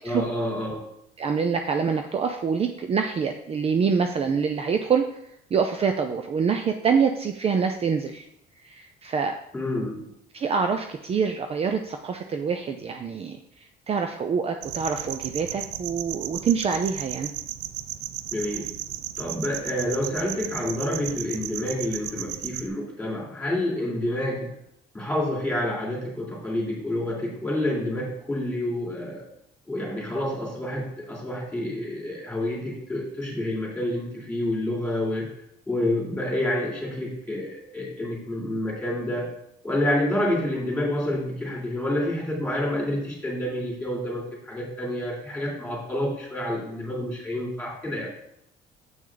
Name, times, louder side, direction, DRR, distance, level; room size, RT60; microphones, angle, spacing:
voice 1, 0.0-0.8 9.5-10.0 18.3-18.7 19.2-24.5 24.9-29.2 29.7-35.3 35.7-39.3 39.6-48.1, left 1 dB, 5° left, -3 dB, 3.3 m, -28 dB
voice 2, 1.2-5.2 5.5-8.3 8.6-9.4 10.3-13.4 13.9-17.3, right 6 dB, 35° right, 6 dB, 0.5 m, -25 dB
sound 1, 14.6-22.7, right 13 dB, 90° right, 0.4 m, -35 dB
7.2 x 6.0 x 3.9 m, 0.76 s
cardioid pair, 110°, 17 cm